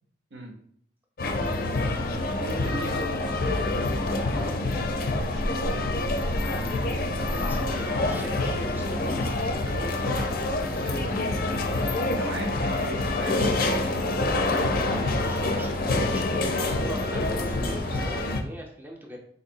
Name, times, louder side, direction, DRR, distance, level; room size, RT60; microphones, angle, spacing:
sound 1, 1.2-18.4, left 2 dB, 50° left, 0.4 m, -26 dB
voice 1, 1.4-2.7 7.2-10.4 10.7-11.2 14.4-16.3 16.6-19.2, equal, 10° right, 0 dB, 0.4 m, -41 dB
voice 2, 2.4-6.1 10.8-11.1 11.7-14.9, right 1 dB, 85° right, 2 dB, 0.8 m, -39 dB
4.0 x 2.7 x 2.7 m, 0.65 s
head